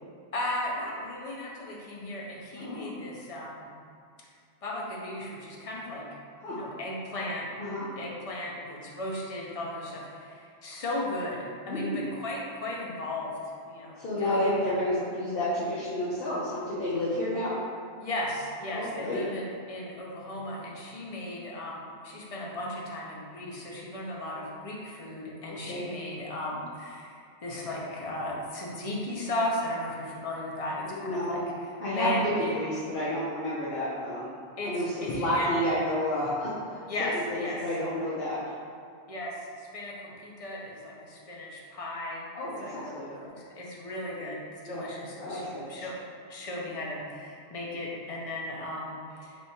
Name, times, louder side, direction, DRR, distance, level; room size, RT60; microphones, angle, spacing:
voice 1, 0.3-3.7 4.6-6.0 6.5-7.5 8.0-14.7 18.0-31.4 31.9-32.5 34.6-35.5 36.9-37.6 39.1-42.3 42.6-45.9 46.3-49.4, left 1 dB, 40° left, -3 dB, 0.6 m, -36 dB
voice 2, 2.6-3.0 6.4-6.6 7.6-7.9 11.7-12.1 13.9-17.6 18.7-19.2 25.5-25.8 30.8-31.4 31.8-34.3 34.6-38.5 42.3-43.1 44.6-44.9 45.2-45.9 46.5-46.7, left 1 dB, 55° left, -9 dB, 1.0 m, -30 dB
3.3 x 3.1 x 4.2 m, 2.3 s
omnidirectional pair, 1.1 m